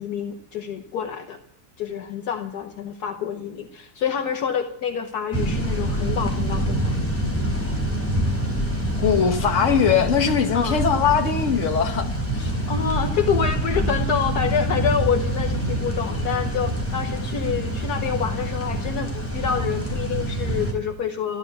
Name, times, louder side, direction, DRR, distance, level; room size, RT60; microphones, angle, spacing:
voice 1, 0.0-1.4 1.8-7.1 10.5-10.8 12.3-21.4, left 7 dB, 65° left, 1.4 m, -27 dB
sound 1, 5.3-20.7, right 1 dB, 10° left, 3.6 m, -26 dB
voice 2, 9.0-12.1, left 7 dB, 45° left, 1.7 m, -20 dB
14.0 x 11.0 x 6.8 m
omnidirectional pair, 1.8 m